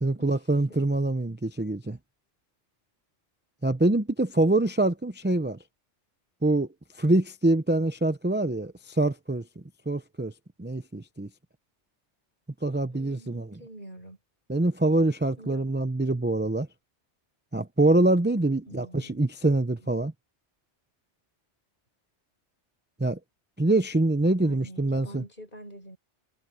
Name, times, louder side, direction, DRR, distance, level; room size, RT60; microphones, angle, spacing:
voice 1, 0.0-2.0 3.6-5.6 6.4-6.7 7.0-9.5 9.9-10.3 10.6-11.3 12.6-13.6 14.5-16.7 17.5-20.1 23.0-23.2 23.6-25.2, right 2 dB, 10° right, 0.5 m, -25 dB
voice 2, 12.9-14.2 15.4-15.7 18.7-19.2 24.4-26.0, right 1 dB, 45° left, 6.6 m, -45 dB
omnidirectional pair, 1.2 m